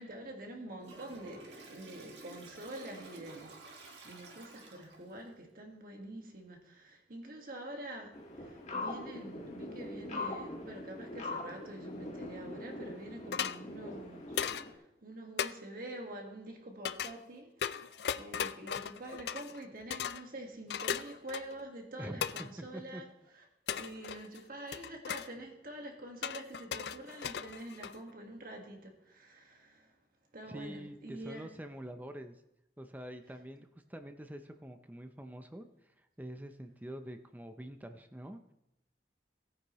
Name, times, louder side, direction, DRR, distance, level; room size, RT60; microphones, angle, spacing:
voice 1, 0.0-23.1 23.3-23.4 23.7-30.0 30.3-31.5, right 1 dB, 55° right, 2 dB, 1.7 m, -46 dB
Toilet flush, 0.8-5.2, right 2 dB, 85° right, 1.7 m, -51 dB
sound 1, 8.1-14.7, left 2 dB, 40° left, 1.9 m, -42 dB
sound 2, 13.3-13.6 14.4-14.7 15.4-15.5 16.8-17.1 17.6-19.6 19.9-20.2 20.7-21.6 22.2-22.5 23.7-24.4 24.7-25.3 26.2-28.1, left 8 dB, 65° left, 0.4 m, -37 dB
voice 2, 22.0-23.0 30.5-32.4 32.8-38.4, right 1 dB, 10° right, 7 dB, 0.6 m, -46 dB
17.0 x 9.4 x 3.1 m, 0.86 s
head